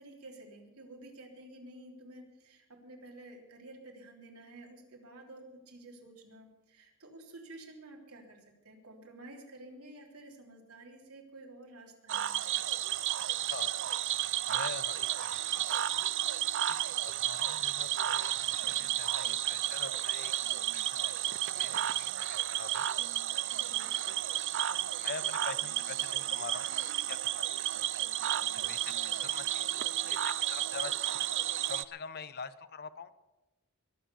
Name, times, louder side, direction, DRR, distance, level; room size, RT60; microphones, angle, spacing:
voice 1, 0.0-12.6 23.5-23.9, right 2 dB, 80° right, 0 dB, 3.5 m, -51 dB
Cricket / Frog, 12.1-31.8, right 12 dB, 55° right, 0.5 m, -32 dB
voice 2, 14.1-15.6 15.9-16.0 16.7-22.9 24.9-27.4 28.4-29.7 30.1-31.1 31.7-33.1, left 5 dB, 45° left, 14 dB, 0.8 m, -45 dB
21.5 x 7.7 x 7.0 m, 1.0 s
head